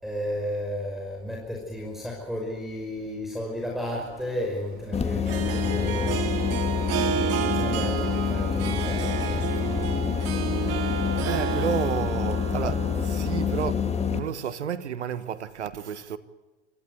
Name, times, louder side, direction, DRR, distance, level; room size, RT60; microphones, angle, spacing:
voice 1, 0.0-6.2 6.8-10.4 10.7-10.9, left 1 dB, ahead, 5.6 m, -34 dB
Harp, 3.9-14.3, right 9 dB, 45° right, 2.1 m, -32 dB
sound 1, 4.9-14.2, left 7 dB, 20° left, 1.9 m, -27 dB
voice 2, 11.3-16.2, right 8 dB, 85° right, 1.4 m, -31 dB
24.5 x 15.5 x 9.3 m
hypercardioid pair, 90°, 34 cm